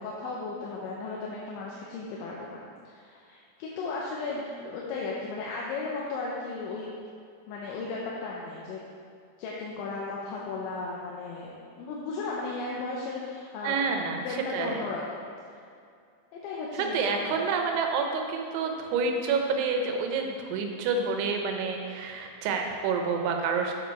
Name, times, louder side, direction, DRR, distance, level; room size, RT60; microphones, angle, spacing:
voice 1, 0.0-2.6 2.9-6.9 7.5-8.8 9.4-13.8 14.2-15.2 16.4-17.4, left 3 dB, 85° left, -4 dB, 3.1 m, -35 dB
voice 2, 13.6-14.3 14.5-14.9 16.7-23.7, right 5 dB, 90° right, 3 dB, 3.2 m, -28 dB
8.5 x 6.9 x 4.5 m, 2.4 s
omnidirectional pair, 5.3 m